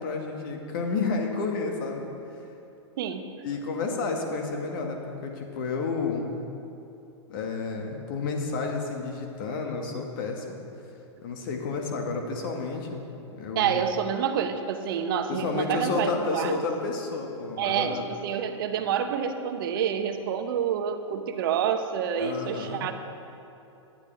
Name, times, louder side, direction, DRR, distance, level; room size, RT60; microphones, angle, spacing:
voice 1, 0.0-2.1 3.4-6.3 7.3-10.6 11.2-13.0 13.3-13.8 15.3-18.0 22.2-22.9, left 4 dB, 45° left, 2 dB, 2.0 m, -31 dB
voice 2, 3.0-3.3 13.5-16.6 17.6-22.9, right 8 dB, 45° right, 7 dB, 1.1 m, -28 dB
18.5 x 12.0 x 3.5 m, 2.8 s
figure-of-eight pair, 105°, 16 cm